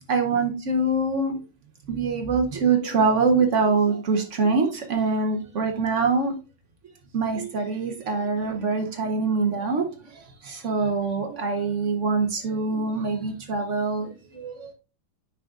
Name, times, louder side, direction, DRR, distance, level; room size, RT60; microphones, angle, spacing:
voice 1, 0.1-1.4 1.9-6.3 7.1-9.9 10.1-14.7, right 4 dB, 80° right, 4 dB, 0.6 m, -24 dB
8.8 x 6.1 x 2.4 m, 0.32 s
omnidirectional pair, 2.4 m